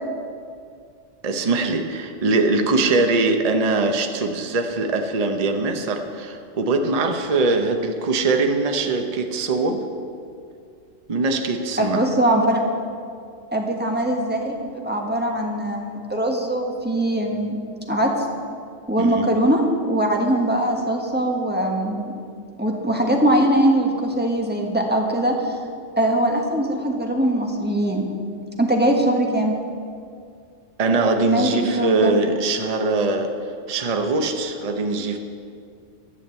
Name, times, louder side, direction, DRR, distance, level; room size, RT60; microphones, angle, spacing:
voice 1, 1.2-9.8 11.1-12.0 19.0-19.3 30.8-33.3 33.7-35.2, right 3 dB, 35° right, 5 dB, 0.8 m, -22 dB
voice 2, 11.8-12.6 13.5-17.6 17.9-18.1 18.9-22.1 22.6-25.6 26.0-28.1 28.6-29.5 31.3-32.1, right 1 dB, 10° right, 0 dB, 1.3 m, -21 dB
11.0 x 7.2 x 8.1 m, 2.3 s
omnidirectional pair, 1.3 m